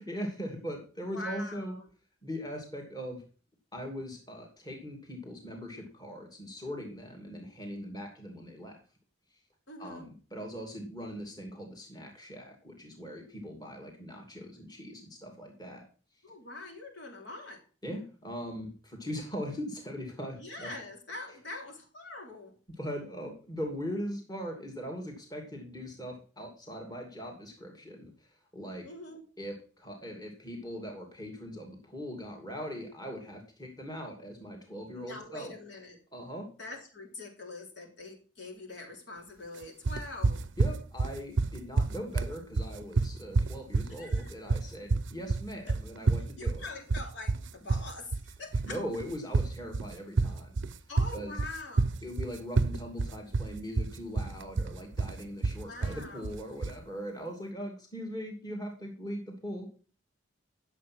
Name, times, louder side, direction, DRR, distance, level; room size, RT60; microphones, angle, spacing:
voice 1, 0.0-1.8 2.2-3.2 3.7-8.8 9.8-15.9 17.8-20.7 22.8-28.3 28.5-28.9 29.4-35.5 36.1-36.5 40.6-46.7 48.6-50.6 51.1-51.3 52.0-59.7, equal, 20° left, 1 dB, 2.5 m, -40 dB
voice 2, 1.1-1.9 9.7-10.1 16.2-17.6 20.3-22.5 28.8-29.2 34.9-36.0 36.6-40.5 44.0-44.3 45.7-45.8 46.4-48.8 50.9-51.9 55.6-56.4, left 2 dB, 60° left, 2 dB, 3.3 m, -44 dB
sound 1, 39.9-56.8, right 3 dB, 70° right, 0.6 m, -29 dB
12.0 x 7.4 x 6.1 m, 0.39 s
head